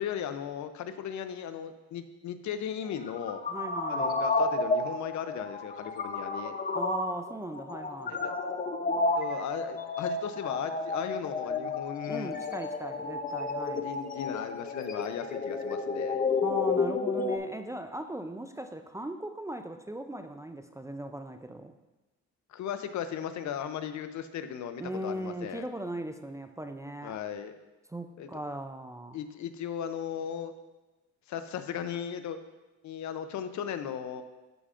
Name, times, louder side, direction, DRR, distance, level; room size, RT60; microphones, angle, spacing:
voice 1, 0.0-3.4 3.9-6.6 8.1-8.3 9.1-12.3 13.7-16.2 22.5-25.7 27.0-27.5 28.2-28.3 29.1-30.5 31.3-32.4 32.8-34.2, left 8 dB, 70° left, 10 dB, 0.6 m, -36 dB
sound 1, 2.9-17.4, left 3 dB, 30° left, 0.7 m, -31 dB
voice 2, 3.5-4.1 6.7-8.2 12.1-13.9 16.4-21.7 24.8-27.2 27.9-29.2, right 1 dB, 10° right, 7 dB, 0.4 m, -38 dB
13.0 x 4.9 x 2.5 m, 1.1 s
cardioid pair, 90°, 30 cm